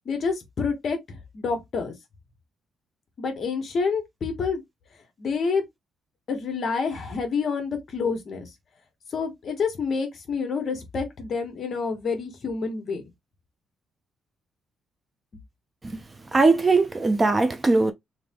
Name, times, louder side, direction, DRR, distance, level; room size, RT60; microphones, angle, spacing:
voice 1, 0.0-1.9 3.2-4.6 5.2-5.6 6.3-8.5 9.1-13.0, left 5 dB, 45° left, 1.4 m, -28 dB
voice 2, 16.3-17.9, right 3 dB, 20° right, 0.5 m, -20 dB
3.4 x 2.7 x 3.6 m
cardioid pair, 135°, 0 cm